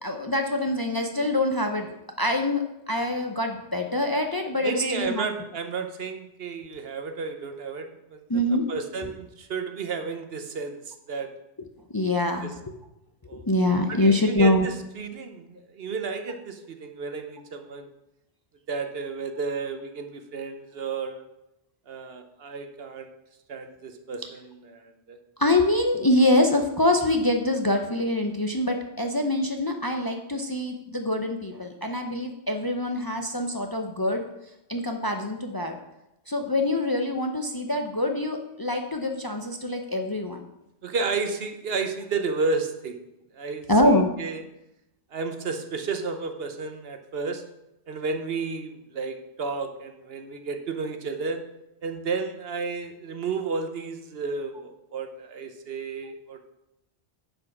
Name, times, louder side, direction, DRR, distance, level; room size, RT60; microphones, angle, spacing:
voice 1, 0.0-5.3 8.3-8.7 9.0-9.1 11.9-12.5 13.3-14.7 25.4-34.2 34.7-35.8 36.3-40.4 43.7-44.1, left 1 dB, 25° left, 4 dB, 0.6 m, -25 dB
voice 2, 4.6-8.2 8.7-11.3 12.4-12.5 13.3-13.4 13.9-17.9 18.7-21.2 21.9-23.1 23.5-25.2 40.8-43.0 43.3-43.6 44.2-44.4 45.1-47.4 47.9-51.4 51.8-56.4, right 4 dB, 65° right, 7 dB, 1.1 m, -32 dB
10.0 x 5.4 x 5.9 m, 0.90 s
omnidirectional pair, 1.1 m